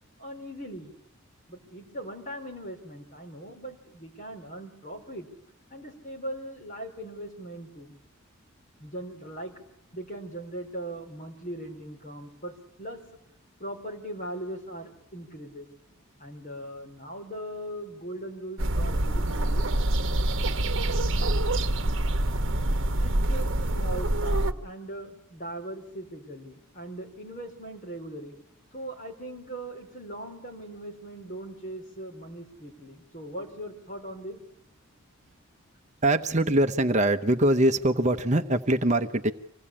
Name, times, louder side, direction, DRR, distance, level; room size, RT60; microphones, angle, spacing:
voice 1, 0.2-1.0 1.5-5.3 5.7-8.0 8.8-9.5 9.9-13.0 13.6-15.7 16.2-19.9 23.0-28.4 28.7-34.4, right 1 dB, 35° left, 2 dB, 4.6 m, -40 dB
sound 1, 18.6-24.5, right 1 dB, 60° right, 1.2 m, -25 dB
voice 2, 36.0-39.3, right 1 dB, 35° right, 8 dB, 0.9 m, -23 dB
25.5 x 17.5 x 8.7 m, 0.77 s
head